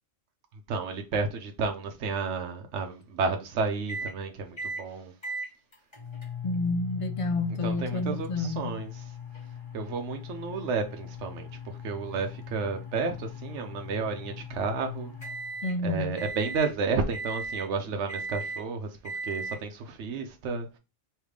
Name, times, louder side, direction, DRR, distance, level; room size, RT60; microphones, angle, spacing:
voice 1, 0.7-5.1 7.6-8.9 9.7-15.1 15.8-19.0 19.2-20.8, right 4 dB, 80° right, 1.0 m, -31 dB
sound 1, 3.9-4.2 4.6-4.9 5.2-15.8 16.2-16.7 17.1-17.7 18.1-18.6 19.0-19.6, left 2 dB, 25° left, 1.0 m, -38 dB
voice 2, 6.4-8.8 15.6-16.2, left 2 dB, 45° left, 0.4 m, -30 dB
3.3 x 3.2 x 4.8 m
omnidirectional pair, 1.2 m